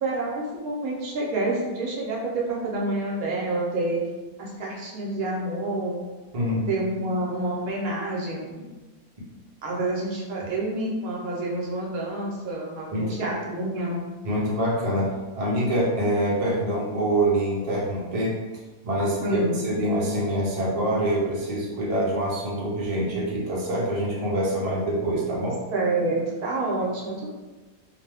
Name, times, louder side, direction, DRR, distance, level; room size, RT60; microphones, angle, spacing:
voice 1, 0.0-4.0 4.4-6.0 6.7-8.8 9.6-14.0 19.2-19.7 25.7-27.3, right 2 dB, 70° right, -3 dB, 1.0 m, -28 dB
voice 2, 6.3-6.7 12.9-13.2 14.2-18.4 18.8-25.6, right 1 dB, 40° right, -6 dB, 0.5 m, -25 dB
2.9 x 2.1 x 3.3 m, 1.2 s
omnidirectional pair, 1.7 m